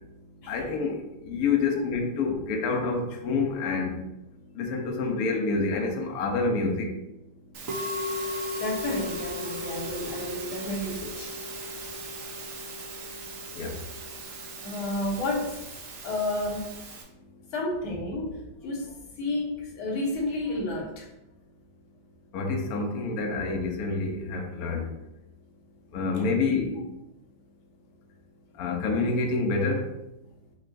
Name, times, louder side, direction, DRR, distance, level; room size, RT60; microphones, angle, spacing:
voice 1, 0.5-1.0 1.2-3.9 4.5-6.9 13.5-13.7 22.3-24.8 25.9-26.7 28.6-29.9, left 4 dB, 65° left, 2 dB, 1.0 m, -27 dB
Musical instrument, 7.5-17.0, equal, 60° right, 0.8 m, -36 dB
voice 2, 8.6-11.3 14.6-15.6 16.0-16.7 17.5-21.1 26.2-26.3, left 2 dB, 80° left, -1 dB, 1.8 m, -31 dB
6.5 x 3.1 x 2.6 m, 0.89 s
omnidirectional pair, 2.3 m